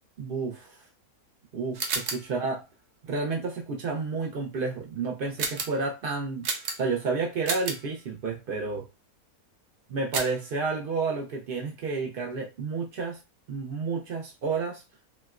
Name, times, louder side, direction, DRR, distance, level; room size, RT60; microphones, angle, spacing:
voice 1, 0.2-0.8 1.5-2.6 3.0-8.9 9.9-13.2 13.5-14.8, right 4 dB, 85° right, 0.4 m, -31 dB
sound 1, 1.7-2.3 5.4-5.8 6.4-7.0 7.4-7.9 10.1-10.5, right 4 dB, 60° right, 0.8 m, -31 dB
4.2 x 2.1 x 2.3 m
omnidirectional pair, 1.6 m